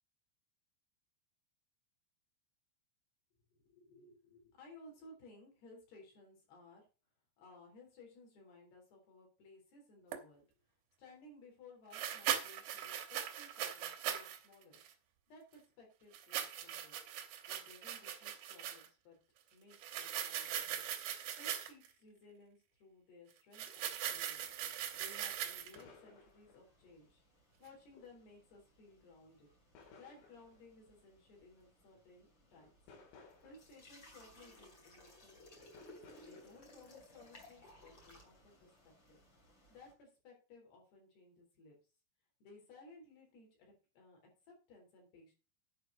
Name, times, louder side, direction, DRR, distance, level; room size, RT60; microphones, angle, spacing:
voice 1, 3.5-6.8 7.4-10.4 11.0-14.8 15.3-17.0 17.5-19.2 19.5-20.8 21.4-24.4 24.9-27.2 27.6-29.5 30.0-32.7 33.4-35.7 36.2-39.2 39.7-41.8 42.4-44.2 44.5-45.3, left 2 dB, 55° left, 0 dB, 5.5 m, -59 dB
sound 1, 10.1-10.2 11.9-14.4 14.7-14.9 16.1-18.9 19.7-21.9 23.5-25.8, right 10 dB, 75° right, 2.3 m, -40 dB
sound 2, 21.7-21.8 22.1-22.2 23.6-23.8 25.8-26.9 27.9-28.4 29.7-30.8 31.9-32.0 32.4-34.0 34.6-34.7 35.7-36.8 37.6-38.4, left 4 dB, 80° left, 5.3 m, -61 dB
sound 3, 24.1-39.9, left 1 dB, 35° left, 2.3 m, -62 dB
10.5 x 5.4 x 6.4 m, 0.34 s
omnidirectional pair, 5.9 m